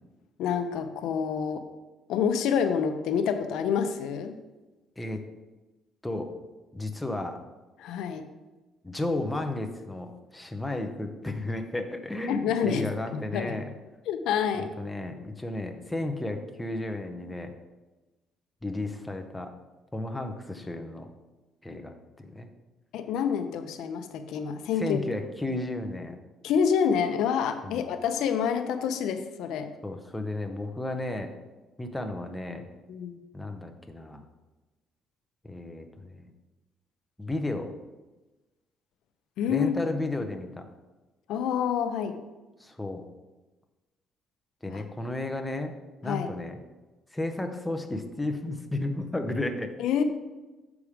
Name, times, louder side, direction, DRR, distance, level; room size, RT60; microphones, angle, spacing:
voice 1, 0.4-1.7 2.1-4.4 7.8-8.3 12.3-13.6 14.1-14.7 22.9-25.0 26.4-29.7 32.9-33.2 39.4-39.7 41.3-42.2 44.7-44.8 46.0-46.3 49.8-50.0, left 7 dB, 75° left, 8 dB, 0.6 m, -27 dB
voice 2, 6.7-7.4 8.8-13.7 14.6-17.5 18.6-19.5 19.9-21.1 21.6-22.5 24.8-26.2 27.6-27.8 29.8-31.3 31.8-32.7 33.3-34.3 35.4-36.3 37.2-37.7 39.5-40.7 42.6-43.1 44.6-45.7 46.0-46.6 47.1-49.7, left 2 dB, 5° left, 4 dB, 0.6 m, -33 dB
7.0 x 4.8 x 5.0 m, 1.1 s
cardioid pair, 160°, 0 cm